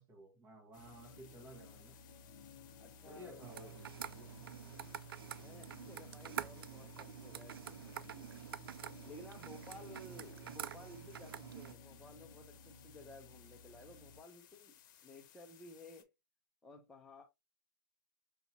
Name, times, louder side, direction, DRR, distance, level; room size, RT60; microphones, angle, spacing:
voice 1, 0.0-2.0 3.0-4.7 10.0-10.2, equal, 20° right, 1.3 m, -55 dB
sound 1, 0.7-16.0, left 11 dB, 55° left, 1.0 m, -63 dB
sound 2, 0.8-14.2, left 4 dB, 25° left, 0.9 m, -58 dB
voice 2, 2.8-3.8 5.3-8.3 9.1-14.7 15.0-16.1 16.6-17.2, left 2 dB, 5° left, 0.6 m, -55 dB
sound 3, 3.4-11.7, right 10 dB, 85° right, 0.4 m, -47 dB
5.6 x 2.8 x 2.7 m
hypercardioid pair, 145°, 12 cm